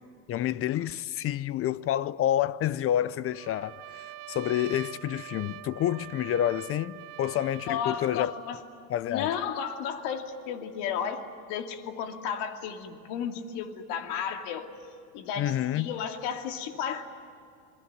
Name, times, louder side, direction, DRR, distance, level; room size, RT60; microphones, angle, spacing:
voice 1, 0.3-8.3 8.9-9.4 15.4-16.0, left 11 dB, 30° left, 0.6 m, -29 dB
Trumpet, 3.3-8.2, right 15 dB, 70° right, 1.1 m, -44 dB
voice 2, 7.7-8.6 9.1-11.2 11.5-14.7 15.1-17.1, left 7 dB, 55° left, 2.7 m, -33 dB
27.0 x 21.0 x 9.4 m
hypercardioid pair, 95°, 47 cm